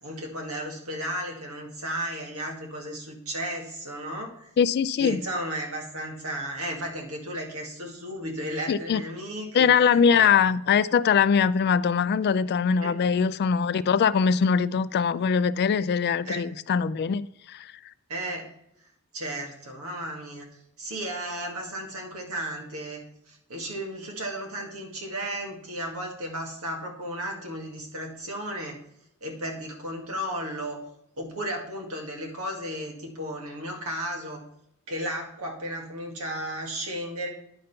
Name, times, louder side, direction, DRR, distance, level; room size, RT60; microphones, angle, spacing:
voice 1, 0.0-4.5 5.0-10.3 12.8-13.2 16.3-16.4 18.1-18.5 19.1-20.5 20.8-28.8 29.2-30.8 31.2-34.4 34.9-37.3, right 1 dB, 70° right, 2.1 m, -34 dB
voice 2, 4.6-5.2 8.7-9.0 9.5-17.7, left 6 dB, 45° left, 0.3 m, -22 dB
10.0 x 5.2 x 5.6 m
head